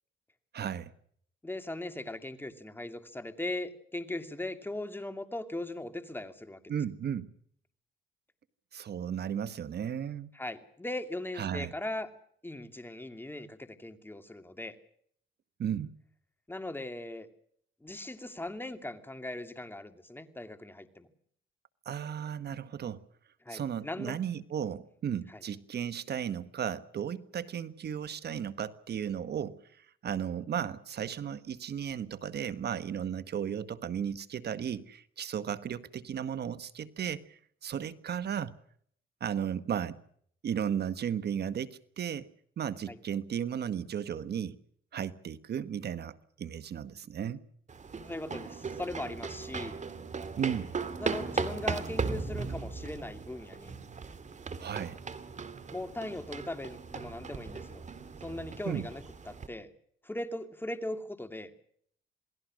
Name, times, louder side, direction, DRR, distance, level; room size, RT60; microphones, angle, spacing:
voice 1, 0.5-0.9 6.7-7.3 8.7-10.3 11.4-11.7 15.6-15.9 21.8-23.0 23.5-38.5 39.2-40.0 40.4-42.3 42.6-44.6 44.9-47.4 50.4-50.7 54.6-55.0 58.7-58.9, right 8 dB, 55° right, 14 dB, 1.2 m, -35 dB
voice 2, 1.4-6.6 10.3-12.1 12.4-14.8 16.5-17.3 17.8-21.1 23.4-24.2 25.3-25.4 42.9-43.0 48.0-49.8 51.0-53.7 55.7-57.8 58.2-59.7 60.0-61.5, left 1 dB, 10° left, 8 dB, 2.5 m, -39 dB
sound 1, 47.7-59.5, right 4 dB, 35° right, 2.4 m, -38 dB
28.0 x 19.0 x 6.3 m, 0.65 s
cardioid pair, 90°, 20 cm